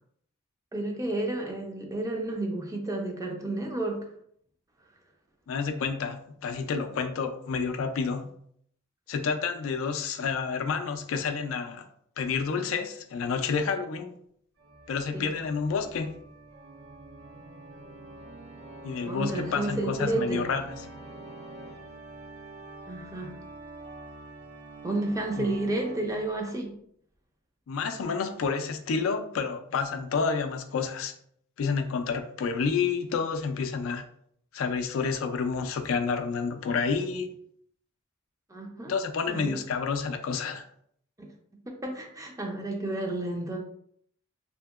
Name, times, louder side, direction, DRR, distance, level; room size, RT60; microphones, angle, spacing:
voice 1, 0.7-4.1 15.1-15.3 19.1-20.5 22.9-23.4 24.8-26.7 38.5-38.9 39.3-39.6 41.2-41.3 41.7-43.6, right 2 dB, 15° right, 1 dB, 0.4 m, -31 dB
voice 2, 5.5-8.3 9.1-11.9 12.2-14.1 14.9-16.1 18.8-20.8 25.4-25.5 27.7-31.1 31.6-34.0 34.5-37.3 38.9-40.6, left 5 dB, 75° left, 7 dB, 0.3 m, -29 dB
Organ, 14.6-26.4, right 2 dB, 85° right, 0.6 m, -45 dB
2.8 x 2.7 x 2.3 m, 0.67 s
head